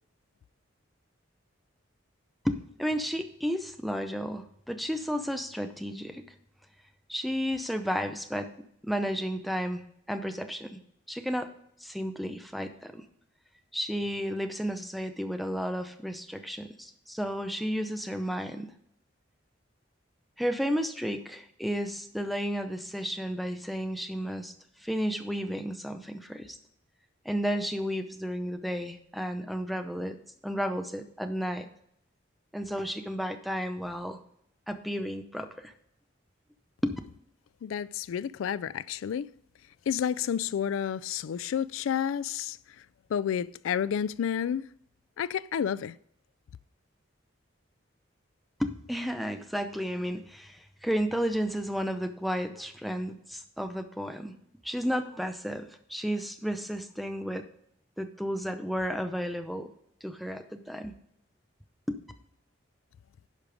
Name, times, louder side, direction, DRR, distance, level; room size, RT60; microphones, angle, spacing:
voice 1, 2.4-6.2 7.1-8.5 8.8-10.8 11.1-11.5 11.8-13.1 13.7-18.7 20.4-24.5 24.8-26.6 27.2-30.2 30.4-31.7 32.5-34.2 34.7-35.7 36.8-37.0 48.6-54.3 54.6-57.4 58.0-59.7 60.0-60.9 61.9-62.0, equal, ahead, 0.6 m, -32 dB
voice 2, 37.6-39.3 39.9-42.6 43.1-44.7 45.2-45.9, left 8 dB, 90° left, 0.3 m, -30 dB
10.5 x 5.2 x 4.9 m
head